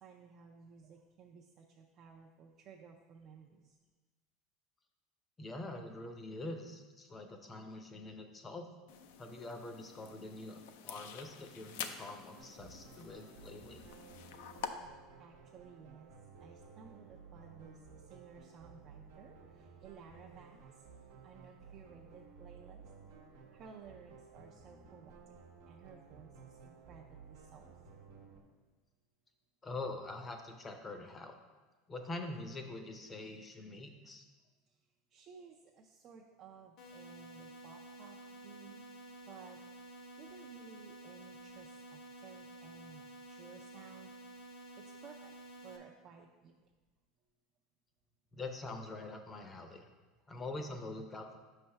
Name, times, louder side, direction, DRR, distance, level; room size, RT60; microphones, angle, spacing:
voice 1, 0.0-3.8 15.2-16.1 16.4-20.8 21.2-22.8 23.5-25.1 25.7-28.1 35.1-38.8 39.3-39.6 40.2-44.1 44.8-45.3 45.6-46.6, right 6 dB, 45° right, 0 dB, 0.4 m, -56 dB
voice 2, 5.4-8.7 9.2-13.8 29.6-31.4 31.9-34.3 48.3-49.9 50.3-51.4, left 2 dB, 20° left, 5 dB, 0.6 m, -44 dB
sound 1, 8.9-14.7, left 8 dB, 80° left, 0.4 m, -48 dB
sound 2, 12.4-28.4, right 5 dB, 90° right, 0.9 m, -56 dB
sound 3, 36.8-45.8, right 1 dB, 55° left, 0.7 m, -52 dB
5.3 x 3.3 x 5.6 m, 1.3 s
supercardioid pair, 120°, 0 cm